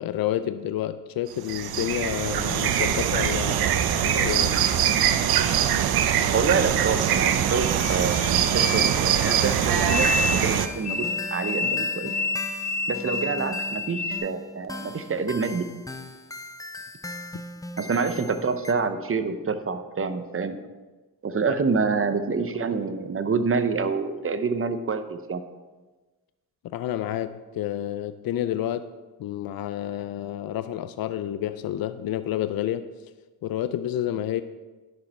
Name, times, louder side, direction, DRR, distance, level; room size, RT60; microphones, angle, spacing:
voice 1, 0.0-4.6 17.3-17.4 26.6-28.9 29.2-32.9 33.4-34.4, left 12 dB, 75° left, 12 dB, 0.5 m, -29 dB
sound 1, 1.3-10.7, right 9 dB, 85° right, 0.6 m, -23 dB
voice 2, 6.3-12.1 12.9-15.7 17.8-20.6 21.2-25.4, right 5 dB, 35° right, 10 dB, 0.8 m, -27 dB
sound 2, 7.5-14.2, left 4 dB, 50° left, 1.5 m, -30 dB
sound 3, 9.4-18.7, left 1 dB, 10° left, 0.6 m, -39 dB
10.5 x 6.3 x 4.2 m, 1.2 s
cardioid pair, 75°, 36 cm